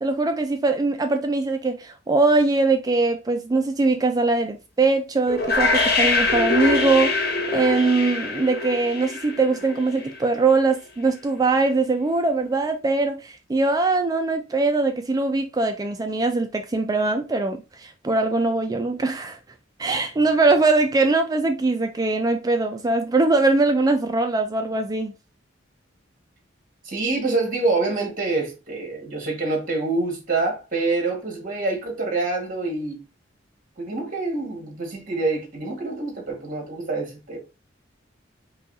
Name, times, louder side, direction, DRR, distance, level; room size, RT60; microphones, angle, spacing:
voice 1, 0.0-19.4 19.8-25.1, right 3 dB, 20° right, 0.4 m, -22 dB
sound 1, 5.3-10.2, left 3 dB, 60° left, 1.3 m, -24 dB
voice 2, 26.8-33.0 33.8-37.4, right 3 dB, 45° right, 2.0 m, -26 dB
5.4 x 2.3 x 3.9 m
head